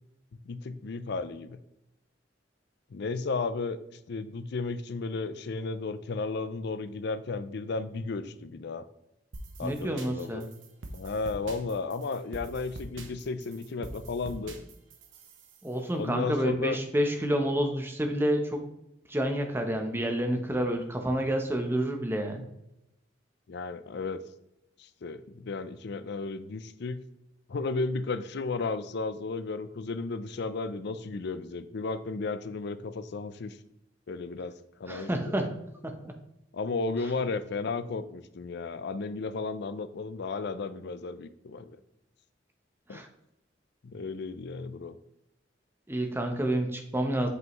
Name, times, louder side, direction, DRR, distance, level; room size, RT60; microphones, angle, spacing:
voice 1, 0.4-1.6 2.9-3.8 4.1-8.8 9.6-10.4 10.9-14.6 15.9-16.8 23.5-24.2 24.8-27.0 27.5-33.6 34.1-34.5 34.8-35.3 36.5-41.7 42.9-43.0 43.8-45.0, left 3 dB, 60° left, 13 dB, 0.5 m, -34 dB
sound 1, 9.3-15.7, right 2 dB, 85° right, 0.9 m, -44 dB
voice 2, 9.6-10.5 15.6-18.6 19.1-22.5 34.9-35.5 35.8-36.1 42.9-43.1 45.9-47.3, right 1 dB, 10° right, 4 dB, 0.8 m, -29 dB
7.9 x 5.5 x 3.1 m, 0.87 s
head